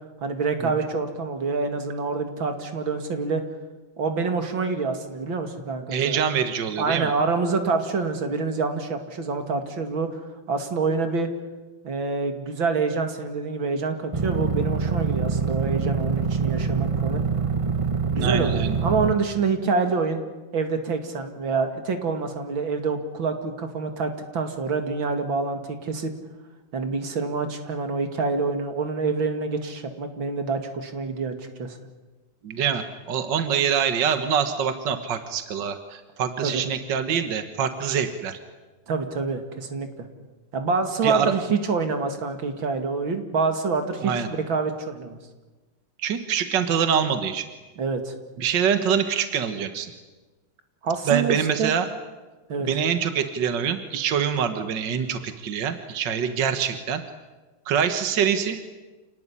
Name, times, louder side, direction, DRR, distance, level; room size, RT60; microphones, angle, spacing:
voice 1, 0.2-3.4 4.0-6.2 6.8-10.1 10.5-11.3 11.8-17.2 18.1-20.2 20.5-26.1 26.7-31.8 36.4-36.6 38.9-40.1 40.5-45.2 47.8-48.1 50.8-51.7 52.5-52.7, right 4 dB, 90° right, 7 dB, 3.1 m, -26 dB
voice 2, 5.9-7.1 18.2-18.8 32.4-38.4 41.0-41.3 44.0-44.3 46.0-47.5 48.4-49.9 51.1-51.9 52.6-57.0 57.7-58.7, right 7 dB, 70° right, 9 dB, 2.0 m, -25 dB
sound 1, 14.1-19.1, right 5 dB, 20° right, 0.9 m, -25 dB
27.5 x 18.5 x 9.8 m, 1.2 s
omnidirectional pair, 2.1 m